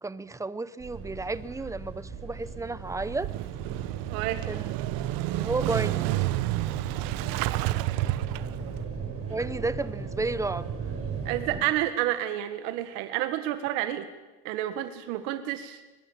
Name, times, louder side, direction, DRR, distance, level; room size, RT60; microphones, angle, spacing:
voice 1, 0.0-3.3 4.5-4.7 5.3-6.2 9.3-10.7, right 3 dB, 10° right, 17 dB, 0.6 m, -32 dB
sound 1, 0.8-11.6, right 5 dB, 35° right, 5.9 m, -38 dB
Motorcycle / Engine starting, 3.0-8.8, right 18 dB, 60° right, 0.9 m, -30 dB
voice 2, 4.1-4.4 11.2-14.1 14.4-15.8, right 13 dB, 75° right, 10 dB, 1.7 m, -29 dB
23.0 x 21.0 x 7.3 m, 1.2 s
supercardioid pair, 125°, 40 cm